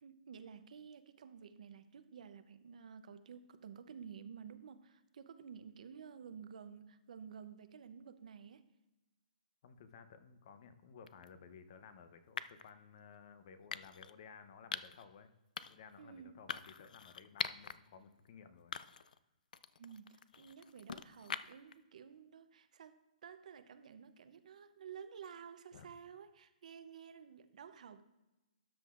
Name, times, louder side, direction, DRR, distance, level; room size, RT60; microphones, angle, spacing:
voice 1, 0.0-8.6 16.0-16.4 19.8-28.0, right 7 dB, 60° right, 0.6 m, -52 dB
voice 2, 9.6-15.3 15.6-18.7 25.7-25.9, left 6 dB, 40° left, 0.7 m, -57 dB
sound 1, 11.1-11.3 12.4-12.7 13.7-14.1 14.7-15.0 15.6-15.9 16.5-17.8 18.2-18.3 18.7-19.2 19.5-21.7, left 7 dB, 75° left, 0.4 m, -43 dB
13.0 x 8.1 x 2.5 m
hypercardioid pair, 165°, 4 cm